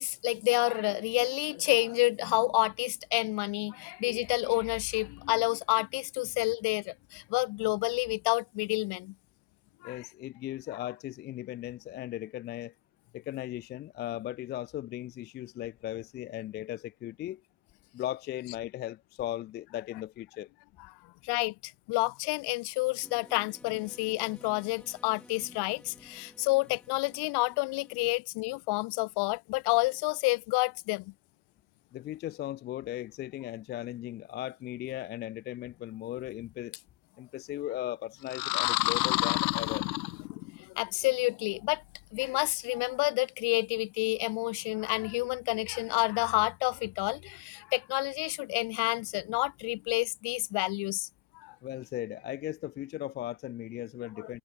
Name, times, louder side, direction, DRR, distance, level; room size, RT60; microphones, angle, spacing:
voice 1, 0.0-9.1 9.8-10.1 21.2-31.1 40.6-41.8 42.1-51.1 51.3-51.6 54.2-54.3, left 24 dB, 50° left, 2.0 m, -29 dB
voice 2, 9.8-12.7 13.1-17.4 17.9-20.5 31.9-36.8 37.2-39.9 51.6-54.4, left 13 dB, 25° left, 0.4 m, -37 dB
sound 1, 23.0-28.1, left 1 dB, ahead, 4.2 m, -54 dB
sound 2, 38.3-40.6, left 23 dB, 90° left, 1.0 m, -29 dB
supercardioid pair, 145°, 49 cm